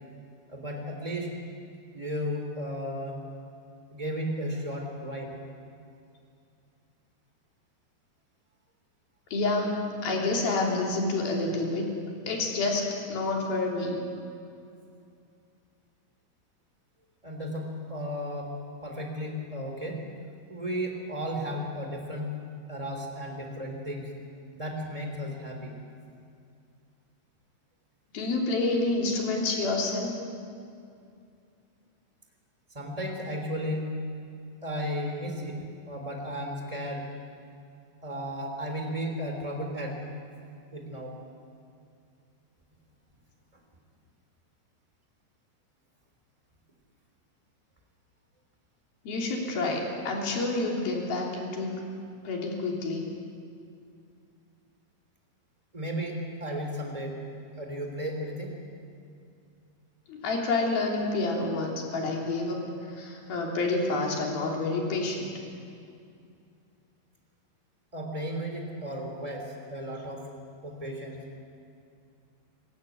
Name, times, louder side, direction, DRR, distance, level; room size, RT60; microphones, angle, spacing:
voice 1, 0.5-1.3 1.9-3.2 3.9-5.3 17.2-18.5 18.8-20.0 20.5-22.3 22.7-24.1 24.5-25.7 32.7-33.9 34.6-35.6 35.9-37.0 38.0-40.0 40.7-41.1 55.7-57.2 57.6-58.5 67.9-70.2 70.6-71.2, equal, 10° right, 2 dB, 2.3 m, -34 dB
voice 2, 9.3-11.9 12.3-14.0 28.1-30.2 49.0-51.8 52.2-53.1 60.1-62.6 63.0-65.3, left 2 dB, 50° left, -1 dB, 4.7 m, -28 dB
25.0 x 15.0 x 9.5 m, 2.5 s
omnidirectional pair, 5.9 m